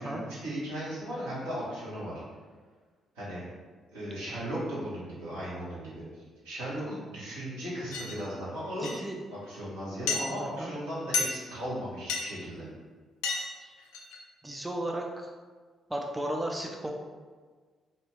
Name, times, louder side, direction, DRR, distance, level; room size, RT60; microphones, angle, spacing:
voice 1, 0.0-2.2 3.1-3.4 3.9-9.1 9.3-12.6, equal, 75° right, -9 dB, 0.9 m, -37 dB
sound 1, 7.9-8.2 8.8-9.0 10.1-10.2 11.1-11.4 12.1-12.3 13.2-13.5 13.8-14.2, left 4 dB, 70° left, 0.3 m, -30 dB
voice 2, 8.8-9.2 10.4-10.8 13.6-13.7 14.4-15.3 15.9-16.9, right 1 dB, 15° right, 1 dB, 0.3 m, -35 dB
2.7 x 2.3 x 3.0 m, 1.5 s
figure-of-eight pair, 40°, 0 cm